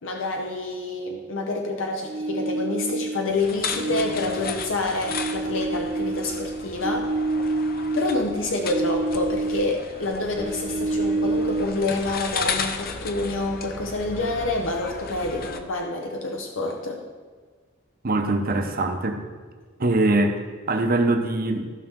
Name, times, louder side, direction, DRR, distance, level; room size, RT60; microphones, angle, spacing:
voice 1, 0.0-7.1 7.9-17.0, left 2 dB, 90° left, 1 dB, 1.0 m, -27 dB
sound 1, 2.1-3.4 3.7-9.8 10.1-11.7, right 2 dB, 30° right, 0.4 m, -28 dB
sound 2, 3.3-15.6, left 5 dB, 50° left, 0.7 m, -35 dB
voice 2, 18.0-19.2 19.8-20.4 20.7-21.7, right 2 dB, 50° right, 5 dB, 0.9 m, -22 dB
15.0 x 5.8 x 3.7 m, 1.5 s
head